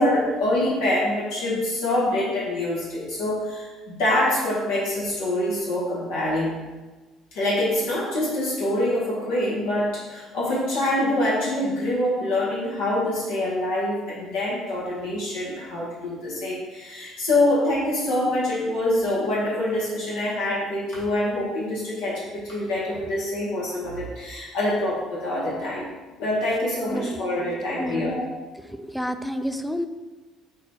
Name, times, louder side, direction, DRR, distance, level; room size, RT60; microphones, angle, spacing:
voice 1, 0.0-6.5 7.3-25.9 26.2-28.3, left 1 dB, 85° left, -7 dB, 2.1 m, -25 dB
voice 2, 26.9-27.2 27.8-28.1 28.7-29.9, equal, ahead, 9 dB, 0.4 m, -29 dB
5.9 x 4.0 x 4.6 m, 1.3 s
cardioid pair, 100°, 0 cm